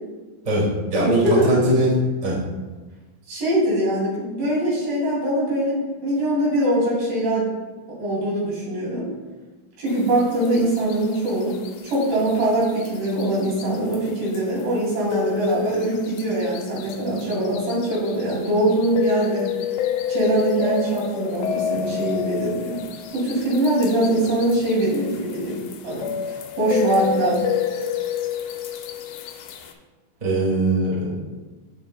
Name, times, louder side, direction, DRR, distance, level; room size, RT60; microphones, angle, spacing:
voice 1, 0.4-1.9 2.2-2.4 30.2-31.3, right 1 dB, 15° right, -5 dB, 1.5 m, -21 dB
voice 2, 1.0-1.6 3.3-7.5 8.0-9.0 9.8-11.6 11.8-19.5 20.1-22.8 23.1-26.1 26.6-27.4, right 1 dB, 70° right, -6 dB, 4.4 m, -22 dB
sound 1, 9.9-29.7, left 8 dB, 80° left, 2.4 m, -30 dB
15.0 x 5.3 x 2.3 m, 1.2 s
omnidirectional pair, 4.3 m